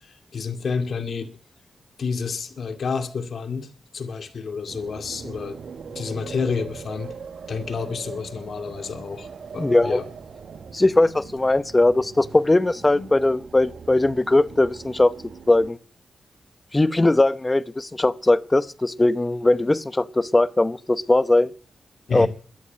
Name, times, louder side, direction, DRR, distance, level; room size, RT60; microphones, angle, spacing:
voice 1, 0.0-1.3 2.0-5.6 5.9-7.2 7.5-9.3 9.5-10.1 12.9-13.1 22.1-22.3, left 5 dB, 65° left, 2.2 m, -29 dB
sound 1, 4.7-15.7, right 6 dB, 70° right, 1.0 m, -41 dB
voice 2, 9.6-10.0 10.7-15.1 15.5-15.8 16.7-21.5 22.1-22.3, left 2 dB, 20° left, 0.8 m, -19 dB
13.0 x 9.4 x 9.1 m
cardioid pair, 75°, 0 cm